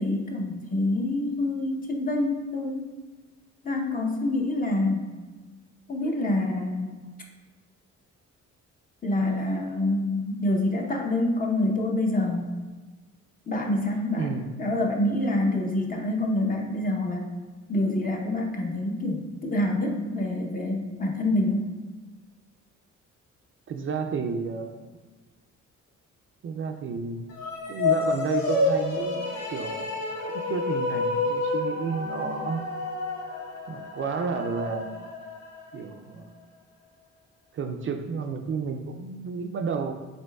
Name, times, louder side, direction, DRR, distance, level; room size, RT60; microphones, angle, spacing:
voice 1, 0.0-2.9 3.6-5.1 5.9-6.9 9.0-12.5 13.5-14.3 14.6-17.3 17.7-21.7, left 1 dB, 30° left, 1 dB, 0.7 m, -26 dB
voice 2, 14.2-14.6 23.7-24.9 26.4-27.3 27.7-30.0 30.4-32.6 33.7-35.0 35.7-36.3 37.5-39.9, right 5 dB, 45° right, 5 dB, 0.4 m, -31 dB
sound 1, 27.3-35.8, left 3 dB, 65° left, 1.0 m, -29 dB
5.2 x 3.3 x 2.2 m, 1.3 s
cardioid pair, 90°, 30 cm